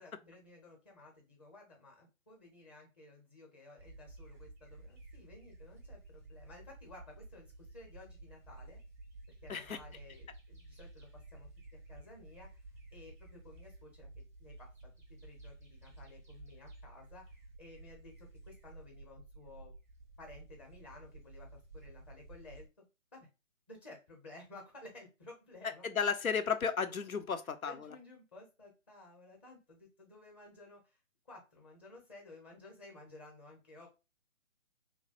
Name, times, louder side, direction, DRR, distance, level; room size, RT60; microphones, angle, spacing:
voice 1, 0.0-8.8 9.4-12.5 12.9-14.7 15.1-19.7 20.2-22.7 23.1-23.3 23.7-25.9 27.4-33.9, left 2 dB, 20° left, 0.8 m, -55 dB
sound 1, 3.8-22.7, right 2 dB, 15° right, 0.5 m, -53 dB
voice 2, 25.8-27.7, left 6 dB, 85° left, 0.8 m, -33 dB
3.1 x 2.2 x 4.1 m
figure-of-eight pair, 145°, 41 cm